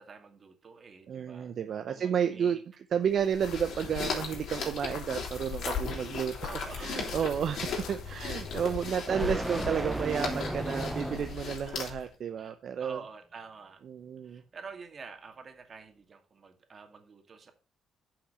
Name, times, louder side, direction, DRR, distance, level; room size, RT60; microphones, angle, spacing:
voice 1, 0.0-1.5 1.9-2.6 6.4-7.3 8.8-9.6 11.3-12.1 12.4-13.8 14.2-17.5, right 5 dB, 45° right, 2.3 m, -48 dB
voice 2, 1.1-2.6 2.9-6.3 6.8-13.0 13.9-14.4, right 8 dB, 60° right, 0.8 m, -31 dB
sound 1, 3.1-12.1, left 6 dB, 65° left, 4.1 m, -37 dB
sound 2, 3.4-8.9, left 6 dB, 85° left, 1.9 m, -44 dB
sound 3, 4.9-11.5, right 1 dB, 5° right, 0.7 m, -38 dB
10.0 x 5.8 x 5.6 m
cardioid pair, 90°, 0 cm